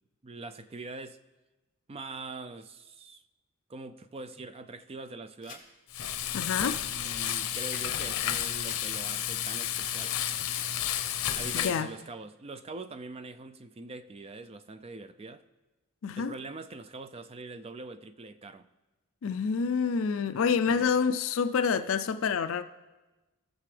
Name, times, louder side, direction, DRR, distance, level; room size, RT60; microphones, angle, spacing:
voice 1, 0.2-1.2 1.9-3.2 3.7-5.7 6.9-10.2 11.3-15.4 16.2-18.7 20.7-20.9, right 3 dB, 25° right, 0.3 m, -43 dB
sound 1, 5.4-5.6 6.1-6.2 6.4-7.9 8.2-8.8 9.2-9.8 10.2-10.7 11.0-11.5, left 6 dB, 40° left, 1.5 m, -47 dB
Frying (food), 5.9-11.8, left 10 dB, 90° left, 0.7 m, -31 dB
voice 2, 6.3-6.8 11.5-11.9 16.0-16.3 19.2-22.6, left 6 dB, 60° left, 0.4 m, -27 dB
18.0 x 6.8 x 3.3 m
head